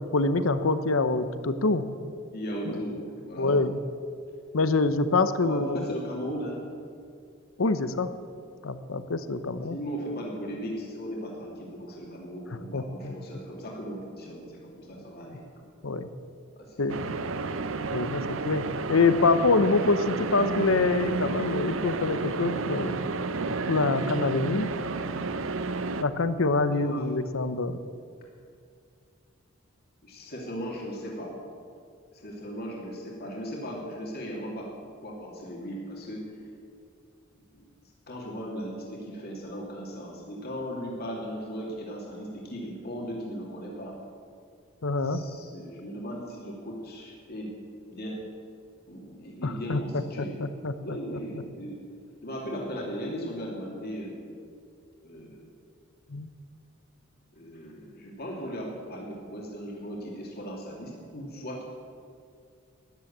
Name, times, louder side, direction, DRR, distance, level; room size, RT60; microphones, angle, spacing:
voice 1, 0.1-1.8 2.7-2.8 3.4-3.8 4.5-5.8 7.6-8.1 8.6-9.8 12.7-13.1 15.8-16.1 16.8-17.1 17.9-23.0 23.7-24.7 26.0-27.8 44.8-45.2 49.4-50.0 50.4-51.2 56.1-56.3, left 3 dB, 75° left, 12 dB, 0.8 m, -25 dB
voice 2, 2.3-3.6 5.4-6.6 9.7-15.4 16.5-17.1 26.7-27.1 30.0-31.3 32.1-34.7 35.0-36.2 37.3-37.7 38.1-43.9 45.0-47.5 47.9-48.2 48.9-50.4 50.8-51.8 52.2-54.3 55.0-55.5 57.3-61.6, equal, 50° left, -2 dB, 2.6 m, -37 dB
sound 1, 16.9-26.0, right 3 dB, 70° right, 0.7 m, -31 dB
13.0 x 10.5 x 8.6 m, 2.3 s
head